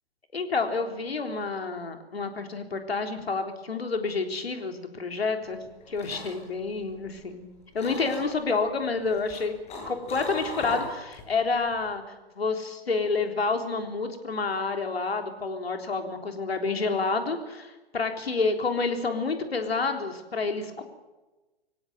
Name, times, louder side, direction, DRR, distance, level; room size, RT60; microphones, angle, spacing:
voice 1, 0.3-7.5 7.7-9.6 9.9-12.0 12.3-20.8, left 4 dB, 75° left, 5 dB, 3.8 m, -29 dB
sound 1, 5.6-7.4 7.8-8.5 9.1-11.3 11.6-12.0, left 1 dB, 20° left, 7.8 m, -38 dB
25.0 x 17.0 x 9.3 m, 1.1 s
figure-of-eight pair, 120°, 31 cm